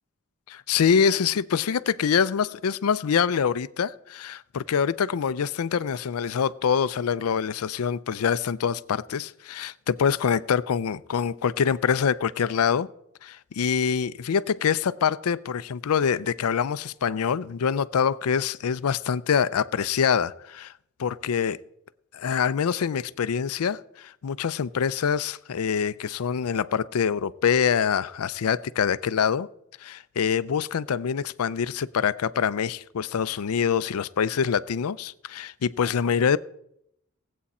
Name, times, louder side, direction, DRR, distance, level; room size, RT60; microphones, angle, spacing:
voice 1, 0.5-12.9 13.2-20.7 21.0-21.6 22.1-29.5 29.8-36.4, left 7 dB, 90° left, 0.4 m, -25 dB
17.5 x 8.4 x 4.2 m
head